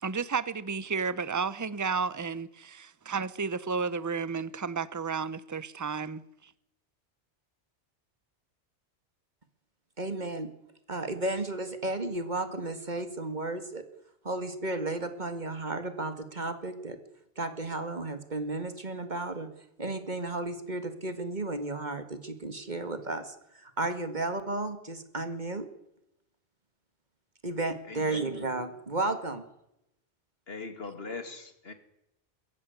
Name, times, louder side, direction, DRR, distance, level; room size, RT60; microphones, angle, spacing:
voice 1, 0.0-6.2, right 5 dB, 20° right, 0.7 m, -32 dB
voice 2, 10.0-10.5 10.9-13.8 14.2-17.0 17.4-19.5 19.8-25.7 27.4-29.5, right 2 dB, 40° right, 2.1 m, -33 dB
voice 3, 27.8-28.5 30.5-31.7, left 4 dB, 60° left, 2.3 m, -40 dB
22.0 x 14.0 x 9.5 m
omnidirectional pair, 1.2 m